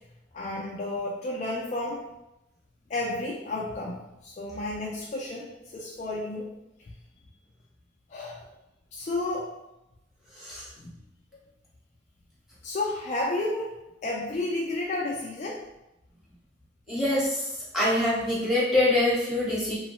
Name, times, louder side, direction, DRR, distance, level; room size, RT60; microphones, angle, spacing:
voice 1, 0.3-2.0 2.9-6.5 6.8-6.9 8.1-8.4 8.9-9.5 10.8-10.9 12.6-15.6, left 2 dB, 40° left, -3 dB, 0.3 m, -32 dB
voice 2, 16.9-17.4 17.7-19.8, left 1 dB, ahead, -8 dB, 0.9 m, -24 dB
3.0 x 2.0 x 2.9 m, 0.90 s
head